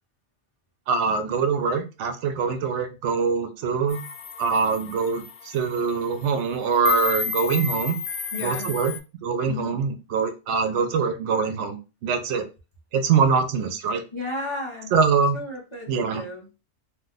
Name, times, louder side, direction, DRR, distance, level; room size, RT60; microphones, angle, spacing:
voice 1, 0.9-4.0 4.4-8.0 8.4-8.9 9.2-11.8 12.0-12.5 12.9-14.0 14.9-15.4 15.9-16.2, right 5 dB, 90° right, 8 dB, 0.9 m, -23 dB
sound 1, 3.9-9.0, left 7 dB, 85° left, 0.9 m, -32 dB
voice 2, 8.3-8.8 9.4-9.8 14.1-14.9 15.3-16.5, left 2 dB, 30° left, -2 dB, 0.8 m, -33 dB
2.5 x 2.1 x 3.8 m, 0.30 s
omnidirectional pair, 1.2 m